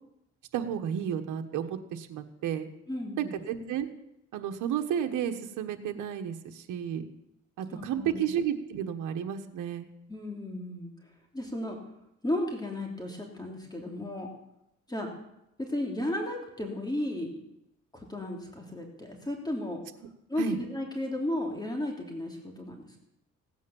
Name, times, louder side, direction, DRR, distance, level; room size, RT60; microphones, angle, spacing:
voice 1, 0.5-2.7 3.2-3.9 4.3-7.1 7.6-9.9 20.4-20.6, right 9 dB, 85° right, 5 dB, 1.3 m, -32 dB
voice 2, 2.9-3.4 7.7-8.2 10.1-10.9 11.3-11.8 12.2-14.3 14.9-15.1 15.6-17.3 17.9-19.8 20.3-23.0, left 1 dB, 15° left, 1 dB, 3.1 m, -34 dB
16.5 x 9.6 x 7.1 m, 0.84 s
cardioid pair, 90°, 30 cm